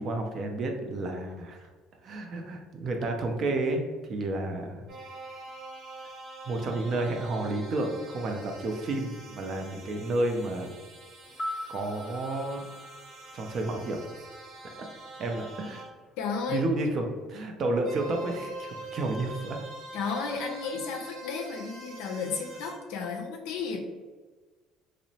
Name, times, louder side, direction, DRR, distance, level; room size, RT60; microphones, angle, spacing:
voice 1, 0.0-1.7 2.0-4.8 6.5-10.7 11.7-12.6 13.3-14.0 15.2-15.8 16.5-19.6, right 2 dB, 50° right, 3 dB, 0.4 m, -31 dB
sound 1, 4.9-15.9 17.8-22.7, right 2 dB, 65° right, 1.0 m, -45 dB
sound 2, 11.2-15.4 15.7-15.8, left 1 dB, 30° left, 0.7 m, -42 dB
voice 2, 16.2-16.6 19.9-23.8, left 5 dB, 70° left, 3 dB, 0.4 m, -33 dB
2.8 x 2.0 x 2.7 m, 1.4 s
hypercardioid pair, 60°, 0 cm